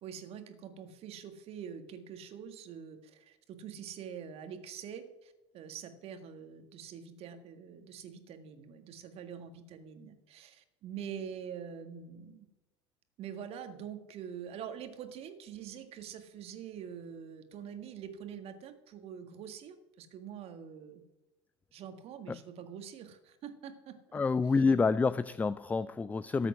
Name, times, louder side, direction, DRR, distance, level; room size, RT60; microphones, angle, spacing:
voice 1, 0.0-12.5 13.2-21.0 21.7-24.2, right 8 dB, 40° right, 8 dB, 1.8 m, -45 dB
voice 2, 24.1-26.5, left 4 dB, 10° left, 17 dB, 0.3 m, -28 dB
13.5 x 8.8 x 6.2 m, 1.0 s
figure-of-eight pair, 75°, 15 cm